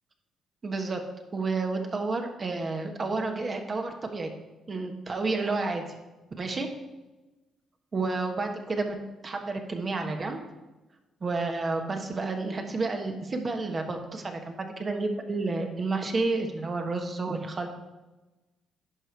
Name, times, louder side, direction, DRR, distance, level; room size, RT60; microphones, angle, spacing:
voice 1, 0.6-1.0 1.3-4.3 4.7-5.8 6.4-6.7 7.9-9.0 9.2-10.4 11.2-17.7, right 3 dB, 35° right, 4 dB, 1.2 m, -30 dB
11.0 x 4.9 x 4.6 m, 1.1 s
cardioid pair, 90°, 0 cm